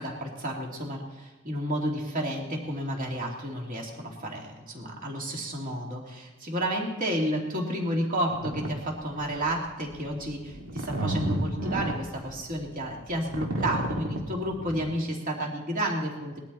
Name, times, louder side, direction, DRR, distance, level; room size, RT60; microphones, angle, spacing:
voice 1, 0.0-16.4, right 1 dB, 40° right, -1 dB, 2.9 m, -31 dB
sound 1, 8.3-8.7 9.2-9.4 9.9-14.9, right 1 dB, 75° right, 2.1 m, -31 dB
20.5 x 12.5 x 4.3 m, 1.2 s
head